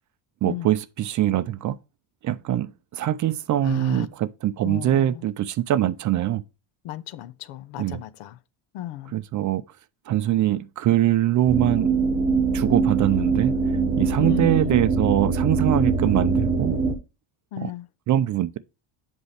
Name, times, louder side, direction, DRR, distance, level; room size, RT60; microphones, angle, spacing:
voice 1, 0.4-1.8 2.2-6.4 7.8-8.0 9.1-9.6 10.1-11.9 12.5-13.6 14.0-16.7 17.6-17.7 18.1-18.6, right 12 dB, 40° right, 0.4 m, -23 dB
voice 2, 3.6-4.1 4.6-5.2 6.8-8.4 8.7-9.1 14.2-14.9 17.5-17.9, left 12 dB, 80° left, 0.8 m, -34 dB
sound 1, 11.5-16.9, right 4 dB, 20° right, 1.0 m, -23 dB
8.0 x 5.4 x 3.3 m
cardioid pair, 135°, 49 cm